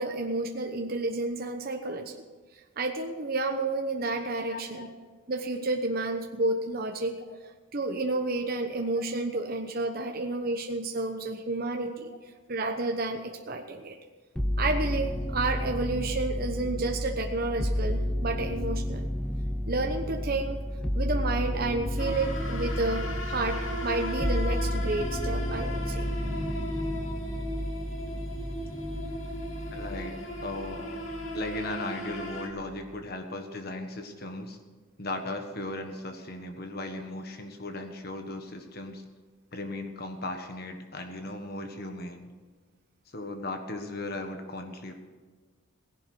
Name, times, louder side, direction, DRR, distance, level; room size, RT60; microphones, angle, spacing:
voice 1, 0.0-2.2 2.8-4.9 5.3-7.2 7.7-12.1 12.5-14.0 14.6-19.1 19.7-20.6 20.9-26.1, right 2 dB, 45° right, 3 dB, 1.0 m, -30 dB
voice 2, 4.5-4.9 7.3-7.4 29.7-30.9 31.3-34.6 35.0-39.0 39.5-42.3 43.1-44.9, left 2 dB, 50° left, 5 dB, 1.5 m, -37 dB
sound 1, 14.4-31.8 32.1-32.9, left 1 dB, 5° left, 0.5 m, -32 dB
sound 2, 22.0-32.5, equal, 70° left, 2.4 m, -37 dB
17.5 x 11.5 x 6.2 m, 1.4 s
head